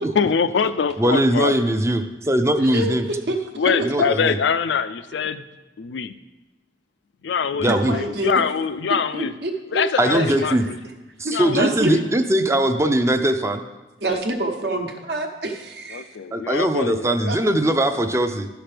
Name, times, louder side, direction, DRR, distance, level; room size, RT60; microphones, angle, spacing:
voice 1, 0.1-1.5 3.6-5.4 5.8-6.1 7.2-9.3 9.7-10.8 11.3-12.0 14.1-14.2 15.9-17.3, left 6 dB, 85° left, 13 dB, 0.4 m, -24 dB
voice 2, 1.0-3.1 3.8-4.4 7.6-7.9 10.0-10.7 11.2-13.6 16.3-18.5, right 1 dB, 15° right, 8 dB, 0.4 m, -20 dB
voice 3, 2.7-3.0 3.3-3.4 3.7-4.1 7.6-8.4 9.1-9.8 10.1-10.7 11.2-11.9 14.0-16.1 17.3-17.4, right 2 dB, 70° right, 3 dB, 1.0 m, -26 dB
12.0 x 5.8 x 3.4 m, 1.1 s
head